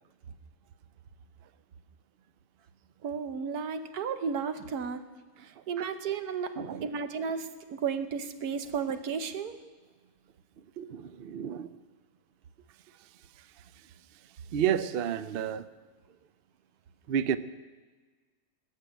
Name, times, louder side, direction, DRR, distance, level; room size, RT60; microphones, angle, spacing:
voice 1, 3.0-5.0 5.4-6.5 6.8-9.5, right 6 dB, 80° right, 1.4 m, -33 dB
voice 2, 5.6-5.9 6.6-6.9 10.8-11.8 13.4-13.6 14.5-15.7 17.1-17.4, right 9 dB, 65° right, 0.6 m, -31 dB
19.0 x 6.6 x 9.0 m
omnidirectional pair, 1.6 m